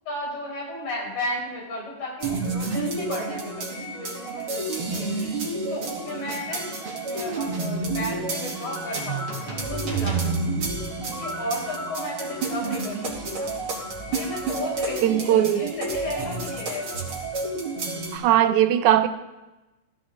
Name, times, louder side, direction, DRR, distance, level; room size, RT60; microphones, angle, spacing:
voice 1, 0.1-5.2 5.7-10.5 11.0-13.5 14.1-17.0, left 1 dB, 75° left, -3 dB, 6.1 m, -34 dB
sound 1, 2.2-18.2, right 3 dB, 45° right, 3.3 m, -30 dB
voice 2, 15.0-15.7 18.1-19.1, right 11 dB, 80° right, 10 dB, 2.1 m, -19 dB
15.5 x 14.0 x 3.7 m, 1.0 s
omnidirectional pair, 3.5 m